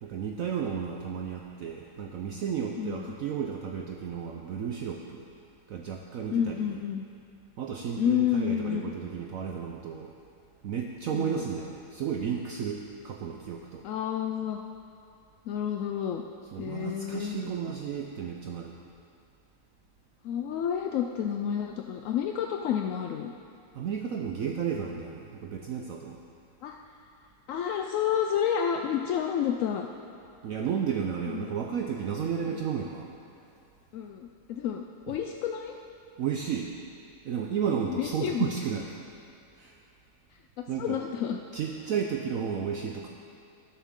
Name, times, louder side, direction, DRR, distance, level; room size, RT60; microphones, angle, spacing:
voice 1, 0.0-5.2 5.7-6.7 7.6-10.1 10.6-13.9 16.5-18.7 23.7-26.2 30.4-33.1 35.1-35.2 36.2-36.7 37.2-38.9 39.6-39.8 40.7-41.0 41.5-43.1, right 7 dB, 65° right, 1 dB, 0.9 m, -33 dB
voice 2, 2.8-3.1 6.3-7.0 8.0-8.9 11.1-11.4 13.8-14.6 15.5-16.2 16.6-17.7 20.2-23.3 26.6-26.8 27.5-29.9 31.2-31.5 32.4-32.7 33.9-35.7 37.8-38.5 40.6-41.4, left 9 dB, 70° left, 3 dB, 0.8 m, -30 dB
19.0 x 7.2 x 3.7 m, 2.5 s
omnidirectional pair, 1.8 m